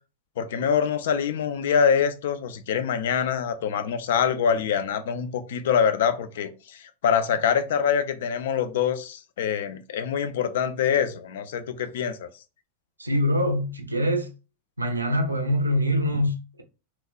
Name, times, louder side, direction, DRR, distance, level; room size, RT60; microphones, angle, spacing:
voice 1, 0.4-12.3, left 7 dB, 55° left, 0.3 m, -25 dB
voice 2, 13.0-14.3 14.8-16.6, equal, 80° right, 0.4 m, -24 dB
2.9 x 2.1 x 2.3 m
figure-of-eight pair, 90°, 0 cm